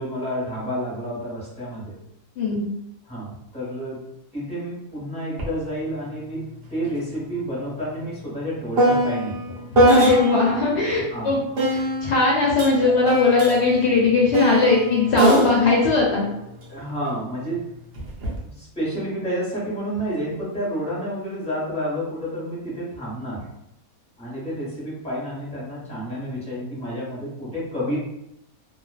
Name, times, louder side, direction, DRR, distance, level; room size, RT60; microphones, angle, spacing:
voice 1, 0.0-1.9 3.1-4.0 4.3-9.6 10.9-11.3 12.8-12.9 16.7-17.6 18.4-23.5 24.2-28.0, equal, 5° left, -8 dB, 0.9 m, -30 dB
sound 1, 5.4-5.5 5.9-10.6 11.6-17.1 17.9-18.4, right 1 dB, 55° right, 0.7 m, -23 dB
voice 2, 9.7-11.4 11.7-16.2, left 3 dB, 65° left, -3 dB, 0.7 m, -19 dB
2.4 x 2.3 x 2.3 m, 0.81 s
omnidirectional pair, 1.5 m